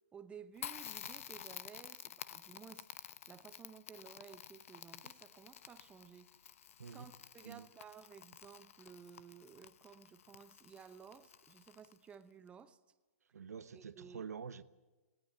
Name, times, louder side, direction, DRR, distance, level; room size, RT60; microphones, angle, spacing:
voice 1, 0.0-6.5 6.9-12.8 13.7-14.3, right 7 dB, 15° right, 0.9 m, -56 dB
Crackle, 0.6-12.1, left 9 dB, 60° left, 0.9 m, -51 dB
voice 2, 13.3-14.6, right 6 dB, 85° right, 1.1 m, -47 dB
19.5 x 18.5 x 8.0 m
hypercardioid pair, 145°, 8 cm